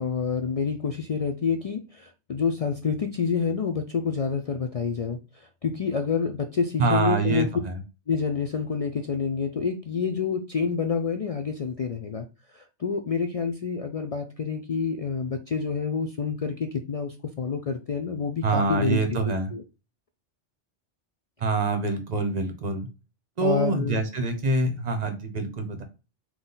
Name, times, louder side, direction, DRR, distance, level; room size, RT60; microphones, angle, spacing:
voice 1, 0.0-7.5 8.1-12.3 12.5-19.2 19.5-19.6 23.4-24.0, left 5 dB, 65° left, 6 dB, 0.3 m, -28 dB
voice 2, 6.8-7.8 18.4-19.5 21.4-22.9 23.4-25.8, right 3 dB, 40° right, 7 dB, 0.9 m, -25 dB
4.0 x 3.0 x 3.8 m, 0.30 s
omnidirectional pair, 1.2 m